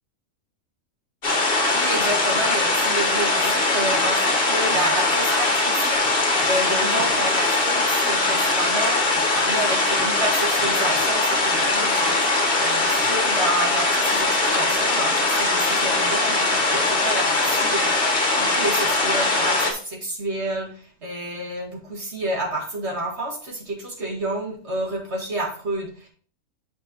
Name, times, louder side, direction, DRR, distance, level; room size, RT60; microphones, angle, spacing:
sound 1, 1.2-19.7, left 2 dB, 40° left, 1.6 m, -21 dB
voice 1, 1.7-26.1, right 1 dB, 45° right, 0 dB, 2.2 m, -29 dB
7.9 x 5.8 x 3.0 m, 0.43 s
omnidirectional pair, 1.6 m